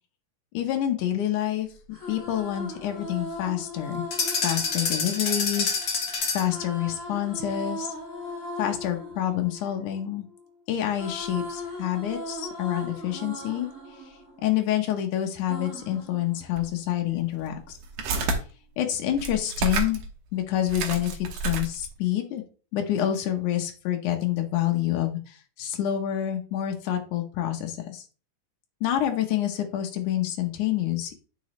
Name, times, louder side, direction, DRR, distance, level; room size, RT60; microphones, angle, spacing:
voice 1, 0.5-1.7 2.1-4.1 4.4-6.0 6.3-7.9 8.6-10.2 10.7-13.7 14.4-17.8 18.8-20.0 20.3-22.4 22.7-28.0 28.8-31.2, left 11 dB, 85° left, 3 dB, 2.5 m, -27 dB
sound 1, 1.7-5.8 6.4-10.5 10.7-15.0 15.5-16.9, left 1 dB, 35° left, 4.1 m, -38 dB
sound 2, 4.1-6.6, left 4 dB, 55° left, 1.0 m, -27 dB
sound 3, 16.6-16.7 17.3-18.4 19.1-20.1 20.4-20.5 20.7-22.0, right 3 dB, 75° right, 2.4 m, -29 dB
9.0 x 5.2 x 3.1 m, 0.37 s
omnidirectional pair, 3.5 m